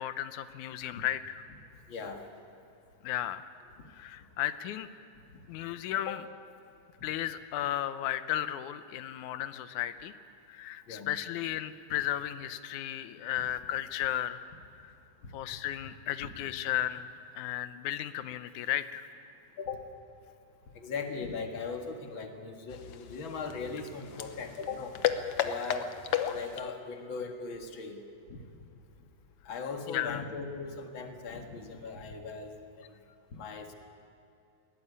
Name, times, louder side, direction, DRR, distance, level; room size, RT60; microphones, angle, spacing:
voice 1, 0.0-1.4 3.0-3.4 3.9-4.9 5.5-6.3 7.0-10.1 10.5-14.4 14.8-14.9 15.3-19.0 29.9-30.2, left 12 dB, 85° left, 12 dB, 2.3 m, -34 dB
voice 2, 1.9-2.2 6.0-6.2 10.9-11.1 19.6-19.8 20.7-24.9 25.4-25.9 26.3-28.0 28.3-28.4 29.5-32.5 33.3-33.8, left 4 dB, 45° left, 4 dB, 2.3 m, -39 dB
sound 1, 22.7-26.8, left 9 dB, 65° left, 1.5 m, -34 dB
20.5 x 17.0 x 9.7 m, 2.7 s
omnidirectional pair, 3.4 m